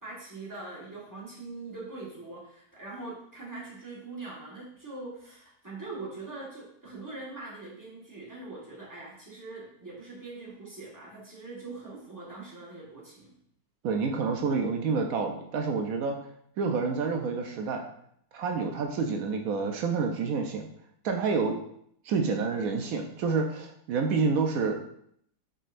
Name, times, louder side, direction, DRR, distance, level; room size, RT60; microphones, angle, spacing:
voice 1, 0.0-13.3, right 3 dB, 15° right, -6 dB, 1.3 m, -42 dB
voice 2, 13.8-16.2 16.6-17.9 18.3-20.7 21.0-21.6 22.0-24.8, right 4 dB, 70° right, 3 dB, 0.9 m, -28 dB
5.4 x 3.8 x 2.5 m, 0.69 s
omnidirectional pair, 1.7 m